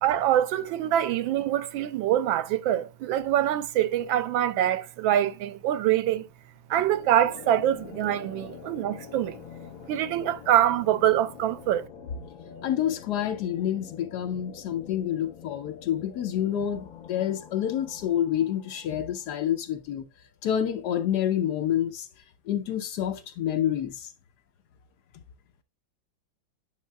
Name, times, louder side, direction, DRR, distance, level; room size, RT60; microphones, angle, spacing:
voice 1, 0.0-6.3 6.7-9.4 9.9-11.9, right 11 dB, 85° right, 1.4 m, -24 dB
sound 1, 6.7-19.8, left 8 dB, 85° left, 2.0 m, -46 dB
voice 2, 12.6-20.1 20.4-22.1 22.5-24.1, left 10 dB, 70° left, 1.0 m, -28 dB
9.1 x 5.5 x 2.2 m
omnidirectional pair, 2.1 m